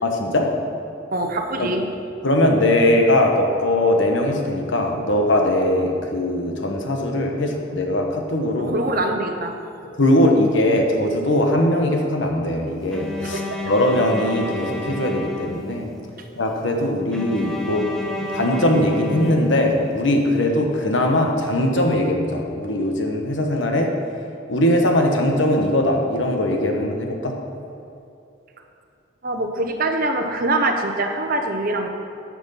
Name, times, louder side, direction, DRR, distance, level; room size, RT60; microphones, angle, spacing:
voice 1, 0.0-0.5 1.6-1.7 2.2-8.7 10.0-15.9 16.4-23.9 24.5-27.3, left 1 dB, 65° left, 2 dB, 1.2 m, -20 dB
voice 2, 1.1-1.8 8.7-9.6 13.2-13.4 29.2-31.9, right 2 dB, 45° right, 4 dB, 0.8 m, -23 dB
Bowed string instrument, 12.9-16.1 17.1-20.0, left 2 dB, 5° left, 0.7 m, -31 dB
10.5 x 6.1 x 5.8 m, 2.6 s
head